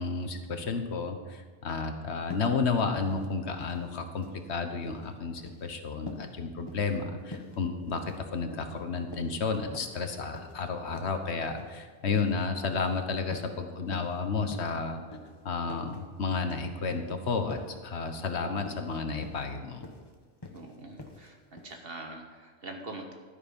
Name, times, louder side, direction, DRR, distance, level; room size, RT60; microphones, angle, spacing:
voice 1, 0.0-15.0 15.4-19.8, left 4 dB, 65° left, 7 dB, 1.4 m, -32 dB
sound 1, 2.3-2.6 2.9-3.3 3.5-4.4 4.7-5.1 5.4-5.7 6.1-6.3 6.7-7.0 7.3-7.6 7.9-8.2 8.5-8.8 9.1-10.0 10.3-10.6 10.9-11.1 11.6-11.8 12.1-12.4 12.7-13.0 13.3-13.6 13.9-14.2 14.5-14.7 15.1-15.3 15.7-16.0 16.3-16.6 16.9-17.1 17.5-17.8 18.1-18.3 18.6-18.9 19.2-19.5 19.8-20.1 20.4-20.6 21.0-21.3 21.6-21.7, left 2 dB, 20° left, 1.1 m, -45 dB
voice 2, 20.5-23.1, right 2 dB, 55° right, 3 dB, 1.5 m, -43 dB
12.5 x 9.8 x 5.3 m, 1.5 s
omnidirectional pair, 1.2 m